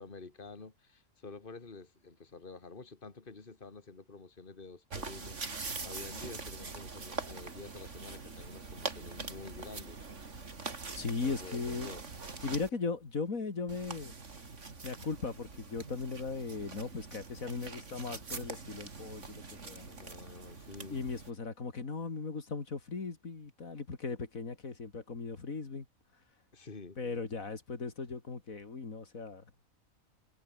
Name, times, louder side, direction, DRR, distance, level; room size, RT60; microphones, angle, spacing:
voice 1, 0.0-10.0 11.2-12.0 19.9-21.0 26.5-27.0, left 4 dB, 40° left, 2.6 m, -49 dB
sound 1, 4.9-12.7 13.7-21.3, right 4 dB, 60° right, 2.8 m, -43 dB
voice 2, 10.9-11.9 12.4-14.1 14.8-19.9 20.9-25.9 27.0-29.4, left 4 dB, 85° left, 3.1 m, -38 dB
omnidirectional pair, 1.4 m